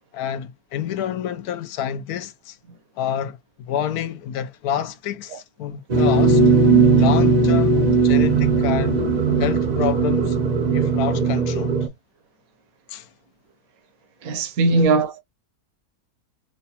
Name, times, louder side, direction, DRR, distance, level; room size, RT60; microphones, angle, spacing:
voice 1, 0.1-2.6 3.0-3.4 3.7-9.1 9.4-10.4 10.7-11.7 12.9-13.1 14.7-14.8, left 9 dB, 75° left, 1.1 m, -28 dB
sound 1, 5.9-11.9, right 4 dB, 50° right, 0.5 m, -18 dB
voice 2, 14.2-15.2, right 3 dB, 65° right, 1.3 m, -19 dB
5.9 x 2.2 x 2.8 m
omnidirectional pair, 1.6 m